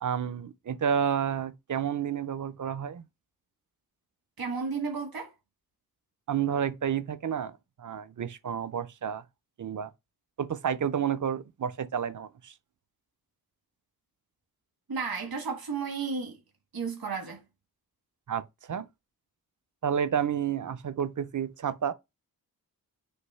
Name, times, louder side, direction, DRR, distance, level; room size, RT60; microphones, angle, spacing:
voice 1, 0.0-3.0 6.3-9.2 9.6-9.9 10.4-12.5 18.3-18.9 19.8-21.9, right 8 dB, 55° right, 0.6 m, -30 dB
voice 2, 4.4-5.3 14.9-16.4 16.7-17.4, right 5 dB, 70° right, 1.8 m, -33 dB
6.6 x 2.7 x 5.5 m
wide cardioid pair, 120°, 37 cm